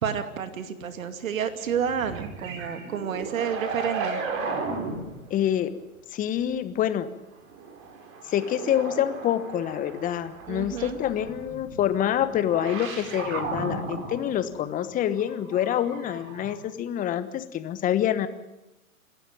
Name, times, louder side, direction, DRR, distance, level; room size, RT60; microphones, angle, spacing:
voice 1, 0.0-4.2 10.5-11.0, right 7 dB, 65° right, 9 dB, 2.5 m, -30 dB
sound 1, 1.4-5.3 7.4-16.6, right 4 dB, 30° right, 4.2 m, -36 dB
voice 2, 5.3-5.7 6.1-7.1 8.3-18.3, left 10 dB, 20° left, 12 dB, 1.2 m, -26 dB
27.5 x 13.0 x 8.8 m, 0.98 s
hypercardioid pair, 125°, 43 cm